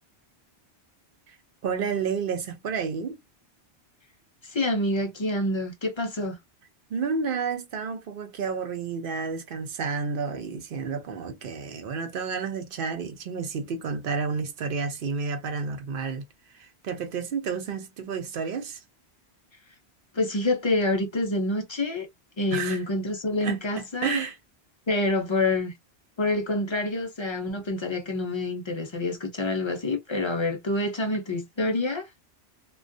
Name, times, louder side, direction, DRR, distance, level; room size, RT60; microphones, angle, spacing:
voice 1, 1.6-3.2 6.9-16.2 16.5-18.8 22.5-22.8 23.4-24.4, right 5 dB, 60° right, 0.7 m, -31 dB
voice 2, 4.4-6.4 20.1-22.1 22.4-24.2 24.9-25.7 26.2-32.1, left 2 dB, 50° left, 0.3 m, -27 dB
2.3 x 2.2 x 2.5 m
omnidirectional pair, 1.1 m